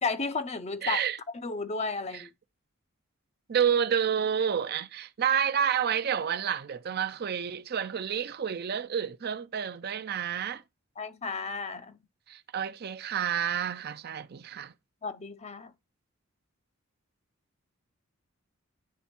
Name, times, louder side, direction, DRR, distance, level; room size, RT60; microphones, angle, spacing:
voice 1, 0.0-1.0 1.3-2.3 11.0-12.0 15.0-15.7, left 4 dB, 30° left, 0.5 m, -33 dB
voice 2, 0.8-1.2 2.1-2.2 3.5-10.6 12.3-14.7, right 8 dB, 45° right, 0.5 m, -29 dB
9.5 x 3.5 x 4.3 m
head